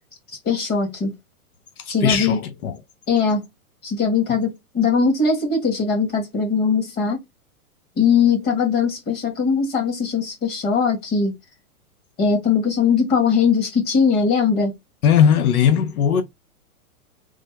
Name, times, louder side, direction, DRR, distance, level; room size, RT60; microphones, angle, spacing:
voice 1, 0.4-1.1 1.9-2.4 3.1-3.4 3.8-7.2 8.0-11.3 12.2-14.7, left 5 dB, 20° left, 1.6 m, -20 dB
voice 2, 2.0-2.8 15.0-16.2, left 8 dB, 85° left, 0.8 m, -18 dB
3.3 x 2.1 x 3.3 m
hypercardioid pair, 145°, 42 cm